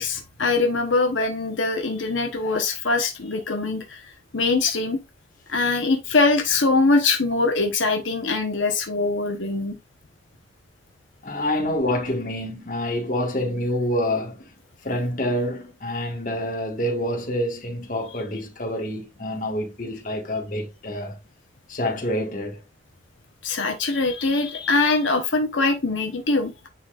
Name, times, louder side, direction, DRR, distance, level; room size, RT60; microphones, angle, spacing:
voice 1, 0.0-4.0 4.3-5.0 5.5-9.8 23.4-26.5, left 3 dB, 85° left, 1.1 m, -22 dB
voice 2, 11.2-14.5 14.8-21.2 21.7-22.6, left 1 dB, 45° left, 1.8 m, -27 dB
9.6 x 4.0 x 2.5 m
head